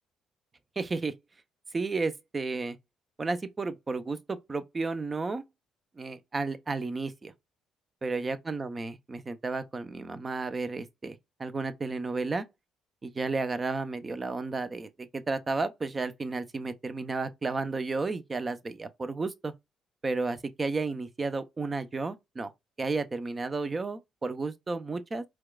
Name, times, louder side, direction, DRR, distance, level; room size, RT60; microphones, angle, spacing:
voice 1, 0.8-1.1 1.7-2.8 3.2-5.4 6.0-7.3 8.0-12.4 13.0-19.5 20.0-22.5 22.8-25.2, right 3 dB, 30° right, 0.6 m, -32 dB
4.4 x 2.3 x 2.3 m
hypercardioid pair, 50°, 0 cm